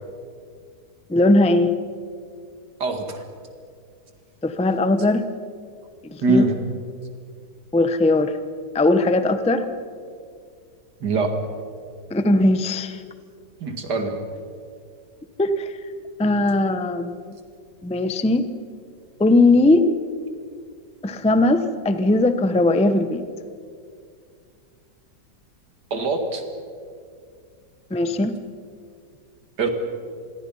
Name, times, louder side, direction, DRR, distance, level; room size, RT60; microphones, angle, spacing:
voice 1, 1.1-1.7 4.4-5.3 6.1-6.4 7.7-8.4 8.7-9.7 12.1-13.0 15.4-15.8 16.2-17.2 17.8-18.5 19.2-19.9 21.0-23.2 27.9-28.4, left 2 dB, 5° left, 10 dB, 0.5 m, -19 dB
voice 2, 2.8-3.2 6.2-6.6 11.0-11.4 13.6-14.2 25.9-26.4 29.6-29.7, right 3 dB, 70° right, 5 dB, 2.7 m, -22 dB
26.5 x 21.5 x 5.6 m, 2.2 s
omnidirectional pair, 1.9 m